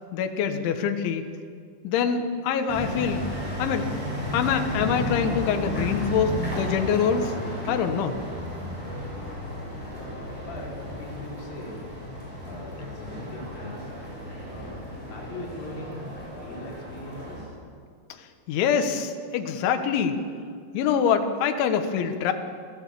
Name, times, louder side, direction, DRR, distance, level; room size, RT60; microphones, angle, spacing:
voice 1, 0.1-1.3 1.8-3.2 3.6-3.9 4.3-7.4 7.7-8.2 18.1-20.2 20.7-22.3, left 7 dB, 75° left, 6 dB, 3.7 m, -25 dB
sound 1, 2.7-17.4, left 1 dB, 10° left, 7.5 m, -33 dB
voice 2, 9.9-10.7 11.0-11.8 12.4-13.9 14.4-14.8 15.1-16.0 16.3-17.6, left 1 dB, 50° left, -3 dB, 6.2 m, -40 dB
26.0 x 15.5 x 8.5 m, 2.1 s
omnidirectional pair, 5.7 m